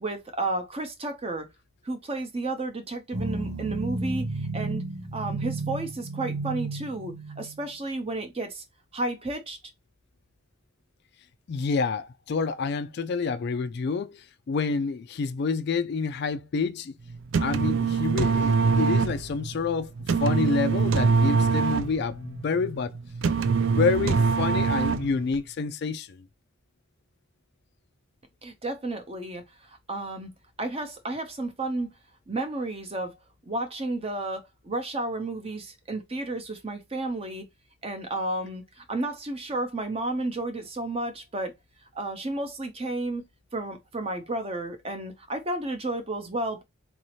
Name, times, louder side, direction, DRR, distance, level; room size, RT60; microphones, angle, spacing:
voice 1, 0.0-1.5 1.8-4.8 5.1-8.6 8.9-9.6 28.4-30.3 30.6-31.9 32.3-33.1 33.5-37.5 37.8-41.5 41.9-43.2 43.5-46.6, right 2 dB, 25° right, 0.7 m, -32 dB
sound 1, 3.1-7.7, right 2 dB, 85° right, 1.0 m, -32 dB
voice 2, 11.5-16.9 17.4-19.9 20.2-22.9 23.5-26.2, left 5 dB, 50° left, 0.3 m, -28 dB
sound 2, 17.1-25.4, right 5 dB, 60° right, 0.4 m, -24 dB
4.0 x 2.7 x 3.0 m
head